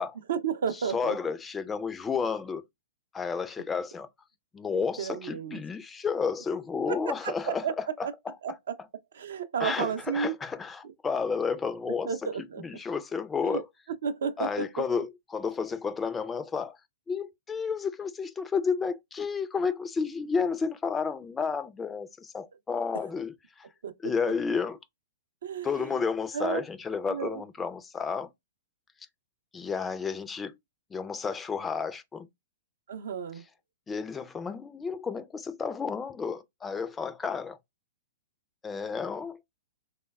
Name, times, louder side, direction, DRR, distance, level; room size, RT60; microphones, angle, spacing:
voice 1, 0.3-1.2 4.7-5.6 6.9-7.0 7.2-7.7 8.0-8.1 8.4-8.5 9.1-10.3 12.0-12.6 13.4-13.6 14.0-14.5 23.8-23.9 25.4-25.9 26.3-26.6 27.1-27.4 32.9-33.4, right 7 dB, 70° right, 0.4 m, -32 dB
voice 2, 0.9-2.6 3.1-4.1 4.5-8.3 9.6-13.7 14.4-16.8 17.1-23.7 24.0-24.8 25.6-28.3 29.5-30.5 30.9-32.3 33.9-37.6 38.6-39.4, left 5 dB, 15° left, 0.3 m, -31 dB
3.2 x 2.1 x 2.2 m
figure-of-eight pair, 110°, 0 cm